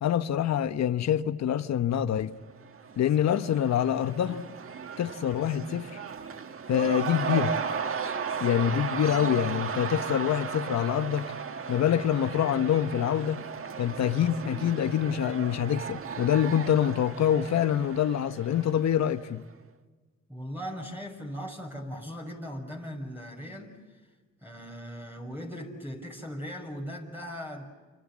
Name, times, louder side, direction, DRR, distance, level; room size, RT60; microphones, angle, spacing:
voice 1, 0.0-2.3 3.0-4.4 5.0-6.0 6.7-7.5 8.4-11.3 11.7-13.4 13.8-19.4, left 10 dB, 60° left, 1.2 m, -26 dB
Cheering / Crowd, 2.5-19.4, right 6 dB, 45° right, 1.7 m, -36 dB
voice 2, 20.3-24.0 24.4-27.7, equal, 5° right, 6.1 m, -39 dB
30.0 x 26.0 x 7.6 m
cardioid pair, 90°, 30 cm